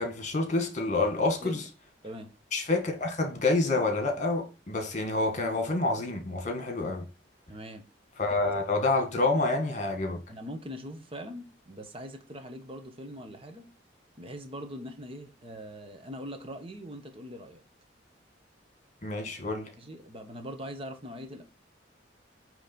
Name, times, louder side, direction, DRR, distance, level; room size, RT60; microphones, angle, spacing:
voice 1, 0.0-1.6 2.5-7.0 8.2-10.2 19.0-19.7, left 2 dB, 40° left, 1.9 m, -28 dB
voice 2, 7.5-7.9 8.3-8.4 10.3-13.7 14.2-17.6 19.8-21.4, equal, 30° right, 1.2 m, -42 dB
8.9 x 3.3 x 4.4 m
head